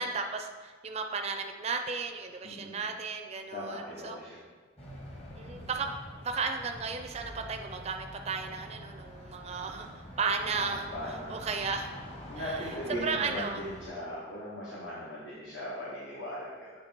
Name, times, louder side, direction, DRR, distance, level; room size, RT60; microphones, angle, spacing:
voice 1, 0.0-4.2 5.4-5.9 6.2-9.9 10.2-11.9 12.4-13.6, right 4 dB, 35° right, 4 dB, 0.4 m, -34 dB
voice 2, 2.4-2.8 3.5-4.4 10.4-11.4 12.3-16.7, equal, 75° left, -7 dB, 1.3 m, -39 dB
sound 1, 4.8-13.9, equal, 30° left, 1.0 m, -46 dB
8.1 x 3.2 x 4.4 m, 1.5 s
head